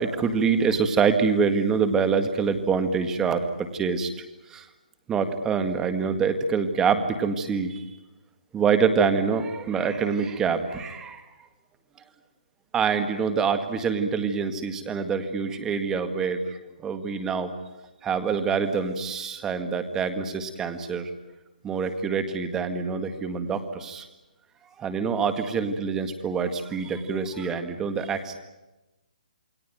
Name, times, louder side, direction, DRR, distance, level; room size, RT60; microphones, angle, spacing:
voice 1, 0.0-4.1 4.5-4.7 5.1-7.8 8.5-11.2 12.7-17.5 18.0-21.1 21.6-24.1 24.8-28.4, right 5 dB, 10° right, 9 dB, 1.9 m, -25 dB
28.5 x 21.5 x 9.3 m, 1.0 s
hypercardioid pair, 160°, 5 cm